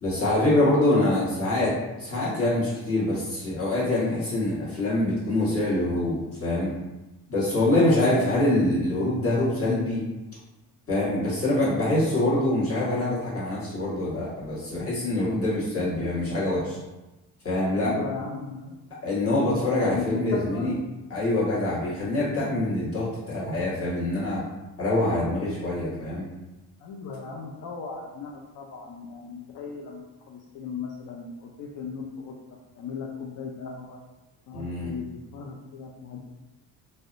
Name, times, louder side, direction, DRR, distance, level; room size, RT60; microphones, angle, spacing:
voice 1, 0.0-6.7 7.3-10.0 10.9-16.8 17.4-17.9 19.0-20.7 21.1-24.4 24.8-26.3 34.5-34.9, left 1 dB, 35° left, -8 dB, 1.3 m, -25 dB
voice 2, 7.7-8.1 17.8-18.9 19.8-20.8 26.8-32.3 32.7-34.0 34.5-35.0 35.3-36.2, left 5 dB, 55° left, -1 dB, 0.5 m, -37 dB
2.6 x 2.1 x 2.5 m, 1.1 s
cardioid pair, 85°, 38 cm